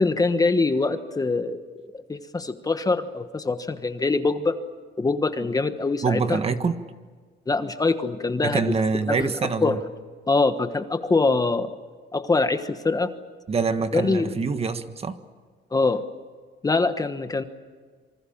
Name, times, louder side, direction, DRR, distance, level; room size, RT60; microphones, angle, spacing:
voice 1, 0.0-1.6 1.9-4.6 5.0-6.4 7.5-8.7 9.2-9.3 9.6-9.8 10.3-11.7 12.1-13.1 13.9-14.4 15.7-16.0 16.6-17.4, left 3 dB, 20° left, 9 dB, 1.3 m, -23 dB
voice 2, 6.0-6.7 8.4-9.8 13.5-15.2, right 4 dB, 30° right, 9 dB, 1.5 m, -25 dB
27.0 x 25.0 x 7.3 m, 1.5 s
cardioid pair, 140°, 19 cm